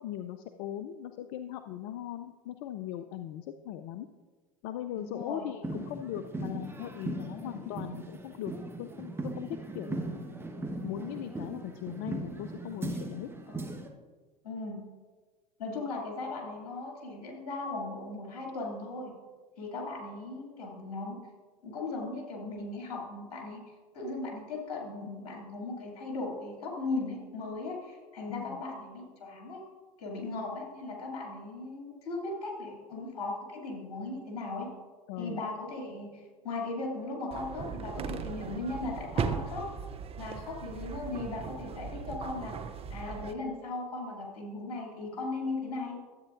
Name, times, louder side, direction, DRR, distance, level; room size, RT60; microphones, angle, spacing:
voice 1, 0.0-4.1 4.6-8.5 8.8-9.1 9.4-10.0 10.8-13.3 28.3-28.6 35.1-35.4, left 11 dB, 60° left, 9 dB, 0.5 m, -39 dB
voice 2, 5.0-5.5 7.4-7.5 9.8-10.0 13.5-13.7 14.4-14.8 15.6-19.1 19.6-21.2 21.6-23.6 23.9-29.6 30.0-34.7 35.2-39.7 40.2-42.5 42.9-46.0, left 3 dB, 80° left, -1 dB, 2.5 m, -37 dB
sound 1, 5.6-13.9, right 2 dB, 10° right, 1.1 m, -39 dB
sound 2, 37.3-43.3, right 6 dB, 30° right, 0.6 m, -37 dB
12.5 x 8.3 x 2.5 m, 1.4 s
hypercardioid pair, 80°, 20 cm